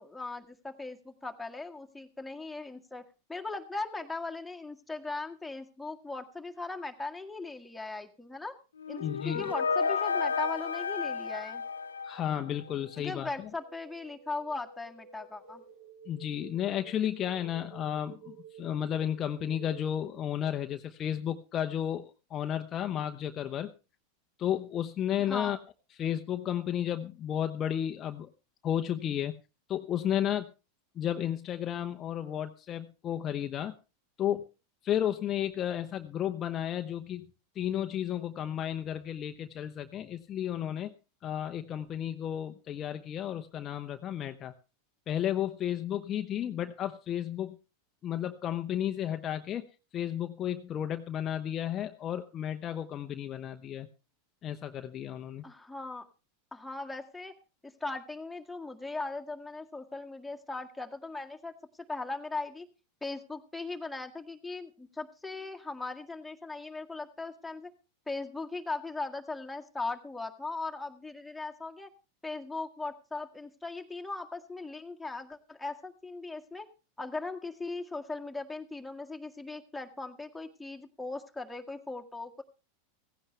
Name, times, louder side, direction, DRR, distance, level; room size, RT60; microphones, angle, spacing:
voice 1, 0.0-3.0 3.3-8.5 8.9-11.6 13.0-15.6 25.3-25.6 55.4-56.1 56.5-57.3 57.6-61.5 61.9-62.7 63.0-67.7 68.1-71.9 72.2-76.7 77.0-82.4, left 3 dB, 5° left, 3 dB, 1.9 m, -39 dB
sound 1, 8.8-12.7, left 5 dB, 85° left, 0.7 m, -32 dB
voice 2, 9.0-9.5 12.0-13.5 16.1-23.7 24.4-25.6 25.9-28.3 28.6-29.3 29.7-30.5 31.0-33.7 34.2-34.4 34.8-37.3 37.5-40.9 41.2-44.5 45.1-47.6 48.0-49.7 49.9-53.9 54.4-55.4, left 10 dB, 35° left, 7 dB, 0.9 m, -33 dB
sound 2, 11.1-20.8, right 6 dB, 60° right, 7.2 m, -53 dB
16.5 x 15.5 x 3.3 m, 0.31 s
hypercardioid pair, 90°, 0 cm